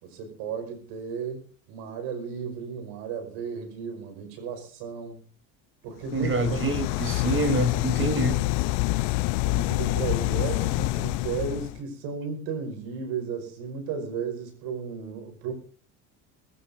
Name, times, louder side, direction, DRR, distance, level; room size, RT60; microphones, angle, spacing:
voice 1, 0.0-5.2 5.8-6.7 9.5-15.5, right 6 dB, 70° right, 6 dB, 5.4 m, -34 dB
sound 1, 6.1-11.8, left 21 dB, 65° left, 0.7 m, -27 dB
voice 2, 6.1-8.4, right 2 dB, 30° right, 7 dB, 3.6 m, -26 dB
20.5 x 16.5 x 2.7 m, 0.39 s
hypercardioid pair, 80°, 43 cm